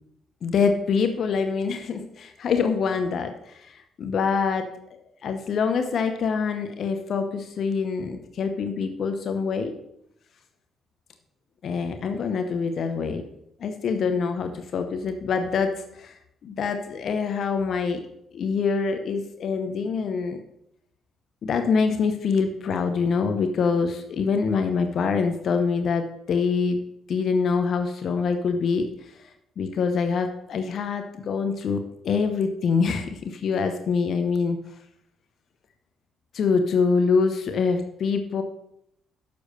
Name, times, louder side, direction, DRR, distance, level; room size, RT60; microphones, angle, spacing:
voice 1, 0.4-9.7 11.6-13.2 13.6-18.0 18.3-20.4 21.4-26.8 27.1-28.9 29.6-34.6 36.3-38.4, left 5 dB, 60° left, 7 dB, 0.9 m, -25 dB
7.0 x 6.4 x 6.6 m, 0.75 s
cardioid pair, 90°, 0 cm